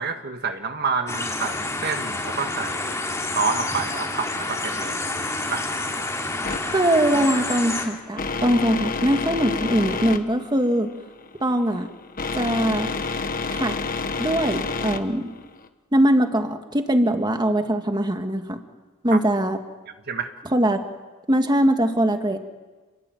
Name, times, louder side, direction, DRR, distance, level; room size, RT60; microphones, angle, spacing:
voice 1, 0.0-5.0 5.2-5.6 19.1-19.2 20.1-20.3, right 5 dB, 45° right, 6 dB, 1.7 m, -28 dB
sound 1, 1.1-7.9, left 2 dB, 15° left, 3.4 m, -28 dB
sound 2, 6.4-15.7, left 4 dB, 40° left, 1.5 m, -29 dB
voice 2, 6.7-10.9 11.4-11.9 12.4-12.9 13.5-13.7 14.2-15.3 15.9-18.6 19.0-19.6 20.5-20.8 21.3-22.4, right 1 dB, 20° right, 6 dB, 1.9 m, -21 dB
29.5 x 22.0 x 9.3 m, 1.3 s
head